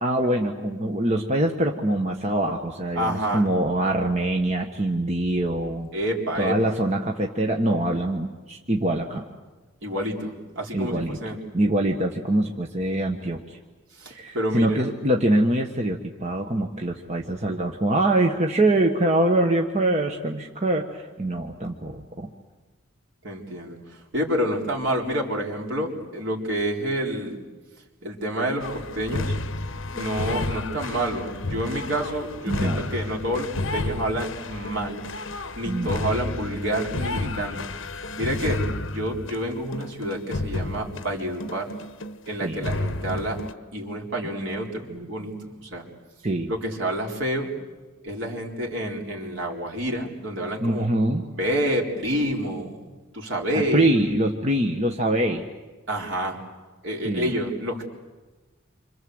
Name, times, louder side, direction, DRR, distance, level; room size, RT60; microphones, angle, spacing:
voice 1, 0.0-5.9 6.3-9.2 10.7-13.6 14.1-22.3 32.5-32.9 35.6-35.9 42.4-42.7 46.2-46.5 50.6-51.2 53.5-55.4 57.0-57.3, right 1 dB, 30° right, 2 dB, 1.4 m, -24 dB
voice 2, 3.0-3.5 5.9-6.8 9.8-11.4 14.0-14.8 23.2-27.4 28.0-29.3 29.9-35.0 35.6-37.7 38.2-41.6 42.3-43.4 43.7-45.9 46.5-47.5 48.0-50.9 51.3-53.9 55.9-56.4 56.8-57.8, equal, 65° right, 0 dB, 4.2 m, -28 dB
sound 1, 28.6-42.3 42.6-43.5, left 2 dB, 70° left, 1.1 m, -31 dB
28.5 x 26.0 x 7.9 m, 1.2 s
head